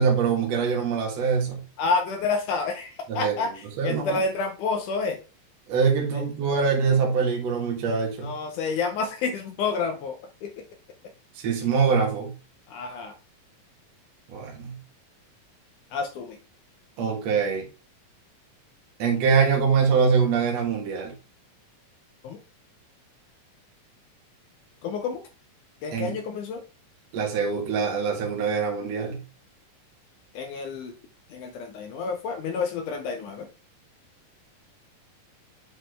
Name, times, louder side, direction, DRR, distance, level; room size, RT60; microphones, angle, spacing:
voice 1, 0.0-1.6 3.1-3.4 3.6-4.2 5.7-8.3 11.4-12.3 14.3-14.8 17.0-17.7 19.0-21.1 25.9-26.1 27.1-29.2, right 5 dB, 60° right, 1 dB, 2.4 m, -24 dB
voice 2, 1.8-3.5 3.8-5.2 6.1-6.2 8.2-10.6 12.7-13.1 15.9-16.4 22.2-22.4 24.8-25.2 25.8-26.6 30.4-30.9 31.3-33.5, left 4 dB, 75° left, 6 dB, 2.2 m, -29 dB
7.8 x 4.4 x 3.3 m, 0.32 s
omnidirectional pair, 3.9 m